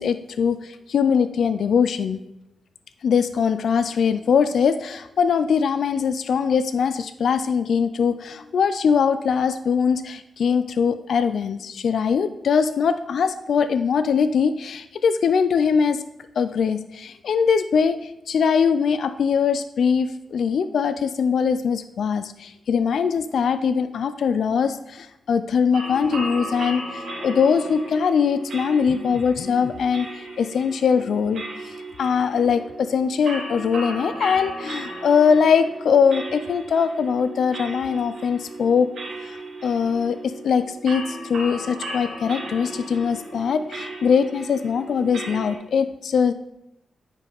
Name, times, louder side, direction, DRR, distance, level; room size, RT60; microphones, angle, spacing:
voice 1, 0.0-2.2 3.0-16.0 16.4-38.9 39.2-46.3, left 6 dB, 75° left, 11 dB, 0.3 m, -22 dB
sound 1, 25.7-45.5, right 1 dB, 70° right, 2.3 m, -35 dB
8.9 x 5.3 x 3.9 m, 0.85 s
cardioid pair, 85°, 0 cm